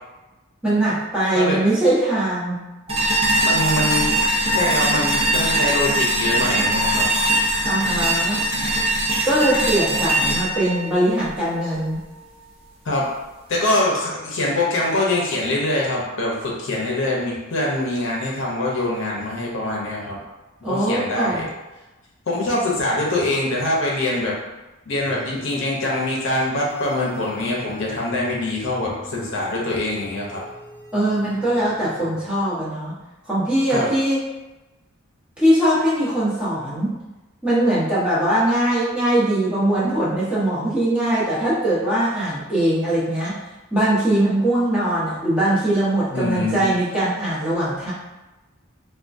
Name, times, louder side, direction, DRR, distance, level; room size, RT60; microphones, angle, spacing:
voice 1, 0.6-2.6 7.6-8.4 9.2-12.0 20.6-21.4 30.9-32.9 33.3-34.2 35.4-36.9 37.4-43.3 43.7-47.9, right 1 dB, 5° right, -10 dB, 0.9 m, -21 dB
voice 2, 1.3-1.7 3.4-4.2 4.5-7.0 12.8-13.1 13.5-20.2 20.6-21.5 22.3-24.4 24.9-30.4 33.7-33.9 46.1-46.7, left 1 dB, 65° left, -3 dB, 0.7 m, -24 dB
sound 1, 2.9-11.9, right 1 dB, 30° right, 0.6 m, -21 dB
sound 2, 25.0-32.5, left 1 dB, 20° left, 0.9 m, -43 dB
3.5 x 2.2 x 2.5 m, 1.1 s
head